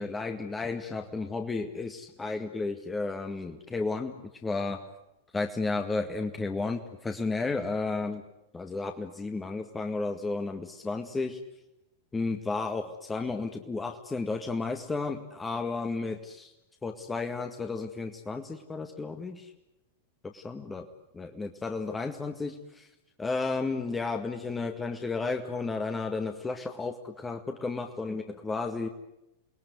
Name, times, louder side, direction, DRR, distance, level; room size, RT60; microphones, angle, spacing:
voice 1, 0.0-4.1 4.4-4.8 5.3-8.2 8.5-11.4 12.1-16.5 16.8-19.5 20.2-20.9 21.1-22.9 23.2-28.9, left 3 dB, 15° left, 5 dB, 1.9 m, -33 dB
29.0 x 21.0 x 9.6 m, 0.90 s
figure-of-eight pair, 95°, 0 cm